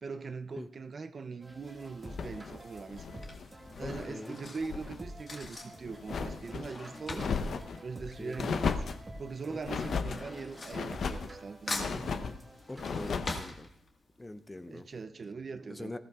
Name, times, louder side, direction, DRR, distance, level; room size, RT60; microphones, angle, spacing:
voice 1, 0.0-3.1 3.8-7.3 7.8-8.8 9.2-12.1 14.7-16.0, right 4 dB, 40° right, 0.4 m, -41 dB
sound 1, 1.4-13.1, right 1 dB, 20° right, 1.4 m, -50 dB
Drawer open or close / Cutlery silverware, 1.7-2.1 2.9-8.8 9.0-11.4 11.7-14.2 14.6-14.7 14.9-15.0, left 2 dB, 35° left, 1.5 m, -43 dB
sound 2, 2.0-4.1 4.4-5.0 5.4-6.7 7.1-7.8 8.4-9.1 9.6-10.2 10.7-11.3 11.7-12.4 12.8-13.4, left 5 dB, 60° left, 0.7 m, -35 dB
voice 2, 3.8-4.4 8.2-8.4 9.5-9.9 12.7-13.7 14.2-14.9 15.7-16.0, left 2 dB, 15° left, 0.5 m, -43 dB
18.5 x 15.0 x 2.3 m
wide cardioid pair, 135°, 0 cm